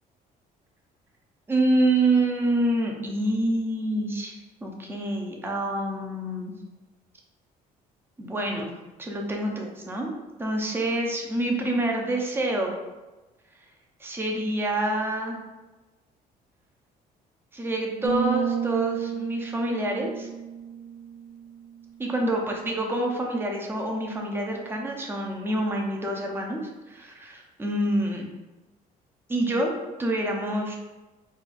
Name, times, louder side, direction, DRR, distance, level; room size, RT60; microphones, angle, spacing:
voice 1, 1.5-6.5 8.2-8.7 9.0-10.1 10.4-12.8 14.0-15.4 17.5-20.3 22.0-26.6 26.9-28.3 29.3-30.8, right 1 dB, 15° right, 0 dB, 0.6 m, -27 dB
sound 1, 18.0-21.8, right 7 dB, 60° right, 0.4 m, -31 dB
3.9 x 2.3 x 2.4 m, 1.1 s
cardioid pair, 115°, 16 cm